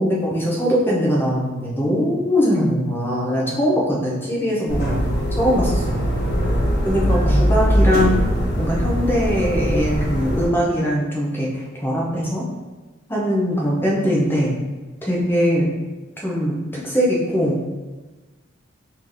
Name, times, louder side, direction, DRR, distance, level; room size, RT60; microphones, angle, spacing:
voice 1, 0.0-5.0 5.4-6.1 6.8-8.2 8.6-12.5 13.1-14.5 15.0-15.7 16.2-17.6, equal, 10° left, -4 dB, 0.6 m, -21 dB
sound 1, 4.7-10.5, equal, 50° left, 0.9 m, -21 dB
3.2 x 2.7 x 3.7 m, 1.2 s
head